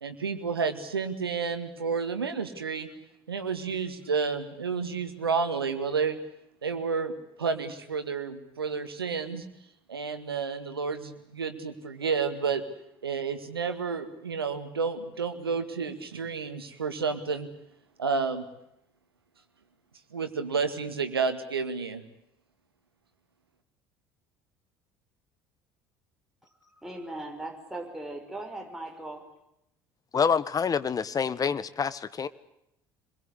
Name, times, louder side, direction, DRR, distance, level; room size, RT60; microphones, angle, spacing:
voice 1, 0.0-2.9 3.3-6.2 6.6-7.1 7.4-9.5 9.9-12.6 13.0-17.5 18.0-18.4 20.1-22.0, right 5 dB, 85° right, 9 dB, 2.0 m, -30 dB
voice 2, 26.6-29.2, right 2 dB, 5° right, 1 dB, 5.7 m, -39 dB
voice 3, 30.1-32.3, left 6 dB, 30° left, 16 dB, 1.4 m, -27 dB
26.0 x 22.0 x 8.2 m, 0.80 s
figure-of-eight pair, 60°, 12 cm